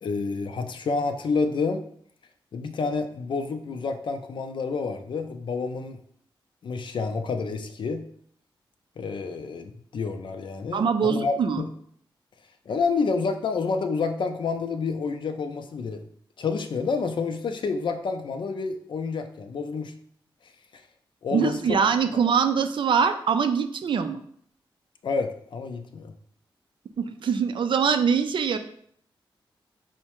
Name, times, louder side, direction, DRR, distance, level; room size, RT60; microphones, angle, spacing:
voice 1, 0.0-1.9 2.5-6.0 6.6-8.1 9.0-11.7 12.7-16.0 16.4-19.9 21.2-21.8 25.0-26.1, left 4 dB, 60° left, 7 dB, 0.4 m, -29 dB
voice 2, 10.7-11.6 21.3-24.2 27.0-28.6, right 6 dB, 65° right, 8 dB, 0.4 m, -23 dB
4.6 x 2.1 x 2.9 m, 0.64 s
cardioid pair, 60°, 9 cm